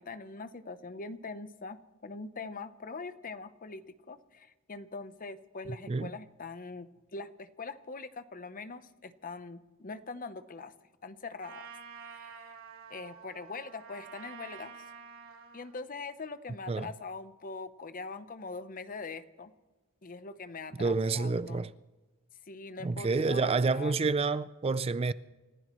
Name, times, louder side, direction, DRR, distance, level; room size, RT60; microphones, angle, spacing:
voice 1, 0.0-10.7 11.0-11.7 12.0-12.5 12.9-14.8 15.5-19.5 20.0-21.6 22.5-23.9, left 4 dB, 40° left, 0.9 m, -42 dB
Trumpet, 11.4-15.7, right 6 dB, 90° right, 3.2 m, -48 dB
voice 2, 20.8-21.7 22.8-25.1, right 4 dB, 30° right, 0.4 m, -28 dB
29.5 x 15.0 x 3.1 m
head